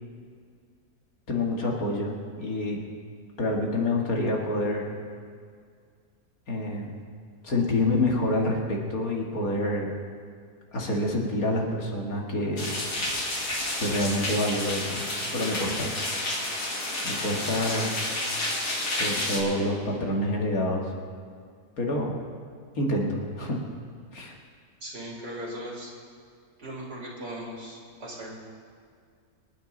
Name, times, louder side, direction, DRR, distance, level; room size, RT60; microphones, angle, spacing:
voice 1, 1.3-2.8 3.4-4.9 6.5-7.0 7.4-9.9 10.7-12.8 13.8-15.0 15.3-15.9 17.0-17.9 19.0-20.8 21.8-22.2 22.7-23.6 24.1-24.3, left 1 dB, 65° left, -1 dB, 2.5 m, -27 dB
sound 1, 12.6-19.4, left 1 dB, 85° left, 2.9 m, -30 dB
voice 2, 24.8-25.9 26.6-28.3, right 1 dB, 90° right, -4 dB, 4.0 m, -38 dB
25.5 x 9.5 x 4.0 m, 2.1 s
omnidirectional pair, 1.7 m